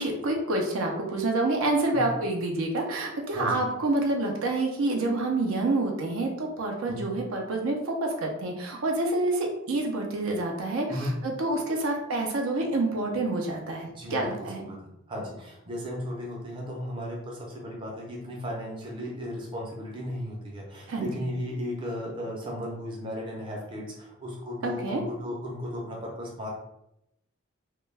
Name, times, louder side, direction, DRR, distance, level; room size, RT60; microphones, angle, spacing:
voice 1, 0.0-14.6 20.9-21.2 24.6-25.0, right 2 dB, 75° right, 1 dB, 0.5 m, -28 dB
voice 2, 3.3-3.6 6.9-7.1 10.9-11.1 13.9-14.8 15.1-26.5, equal, 25° right, -3 dB, 0.5 m, -35 dB
2.2 x 2.1 x 3.2 m, 0.83 s
head